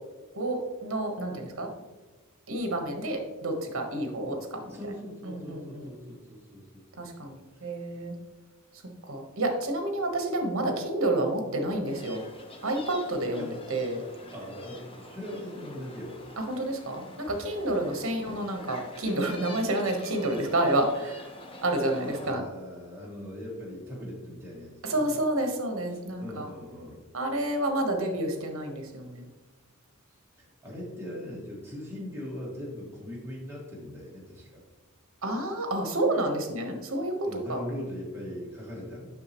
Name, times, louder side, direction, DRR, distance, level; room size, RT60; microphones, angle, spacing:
voice 1, 0.3-1.7 2.5-4.8 5.3-5.9 7.0-8.1 9.1-12.2 12.6-14.0 16.4-21.2 21.6-22.4 24.8-26.5 27.1-29.3 35.2-37.1 37.5-37.6, right 1 dB, 65° right, 4 dB, 1.2 m, -29 dB
voice 2, 4.7-7.1 13.3-13.6 14.3-16.2 17.7-18.1 22.0-25.1 25.9-27.0 30.4-34.6 37.2-39.1, left 1 dB, 10° right, -5 dB, 2.0 m, -40 dB
sound 1, 11.8-22.3, left 1 dB, 25° left, 0.9 m, -46 dB
7.4 x 5.9 x 3.0 m, 1.2 s
head